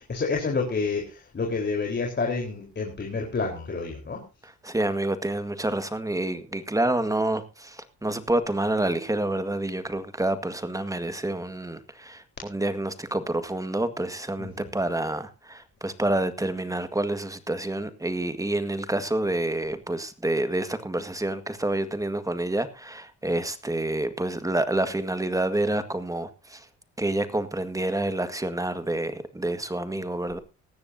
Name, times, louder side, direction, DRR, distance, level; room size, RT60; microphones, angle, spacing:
voice 1, 0.0-4.2 14.4-14.7, left 4 dB, 35° left, 0 dB, 4.2 m, -29 dB
voice 2, 4.6-26.6 27.0-30.4, right 1 dB, 10° right, 11 dB, 1.8 m, -28 dB
18.0 x 14.0 x 2.8 m, 0.31 s
cardioid pair, 90°, 30 cm